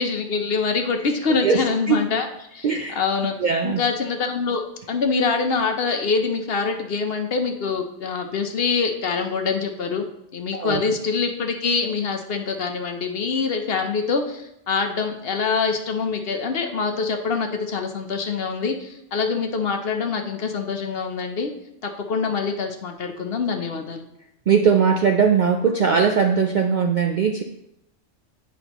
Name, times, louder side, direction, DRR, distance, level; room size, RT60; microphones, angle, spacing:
voice 1, 0.0-3.4 3.6-4.6 4.9-10.0 10.3-21.5 21.8-24.0, left 5 dB, 60° left, 4 dB, 0.9 m, -25 dB
voice 2, 1.3-2.0 2.6-3.0 3.4-3.8 10.5-10.8 24.5-27.4, right 6 dB, 60° right, 3 dB, 0.5 m, -20 dB
8.9 x 5.1 x 2.9 m, 0.81 s
omnidirectional pair, 1.3 m